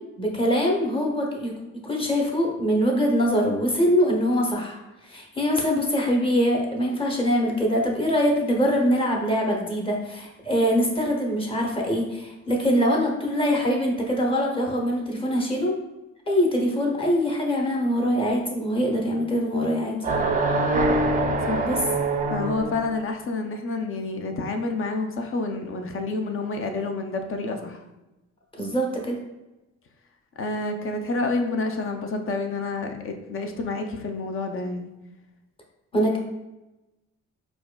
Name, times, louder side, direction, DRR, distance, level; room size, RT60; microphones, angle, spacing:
voice 1, 0.2-1.5 1.8-4.8 5.1-15.8 16.3-20.0 21.6-21.8 28.6-29.2 35.9-36.2, equal, 20° left, 0 dB, 0.9 m, -23 dB
sound 1, 20.0-22.9, right 2 dB, 25° right, 0.4 m, -24 dB
voice 2, 21.5-21.8 22.3-27.8 30.4-34.9, left 3 dB, 45° left, 5 dB, 0.5 m, -29 dB
4.7 x 2.4 x 2.2 m, 0.99 s
cardioid pair, 90°, 30 cm